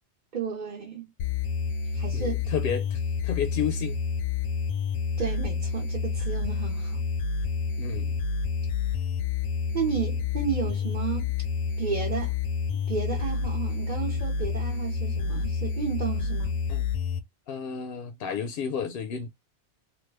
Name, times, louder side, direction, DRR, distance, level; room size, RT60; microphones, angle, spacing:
voice 1, 0.3-1.1 1.9-2.4 5.2-7.0 9.7-11.3 11.8-12.3 12.9-16.6, right 6 dB, 45° right, 0.8 m, -32 dB
sound 1, 1.2-17.2, left 5 dB, 90° left, 0.9 m, -29 dB
voice 2, 2.1-4.0 7.8-8.2 16.7-16.9 17.5-19.3, left 7 dB, 60° left, 0.7 m, -32 dB
3.0 x 2.2 x 3.3 m
omnidirectional pair, 1.2 m